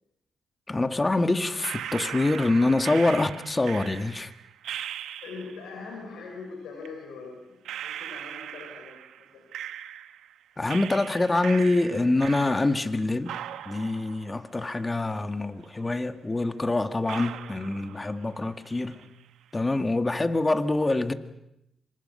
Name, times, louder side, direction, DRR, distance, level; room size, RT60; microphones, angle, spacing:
voice 1, 0.7-4.3 10.6-13.4 13.7-19.1 19.5-21.1, left 2 dB, 25° left, 1.9 m, -25 dB
sound 1, 1.6-5.7 6.8-6.9 7.7-10.3 10.7-13.0 13.3-15.3 15.6-15.7 16.4-16.5 17.1-18.4 18.7-19.2, right 10 dB, 85° right, 1.0 m, -39 dB
voice 2, 5.2-9.4, left 4 dB, 85° left, 6.2 m, -42 dB
28.5 x 26.0 x 5.7 m
supercardioid pair, 55°, 0 cm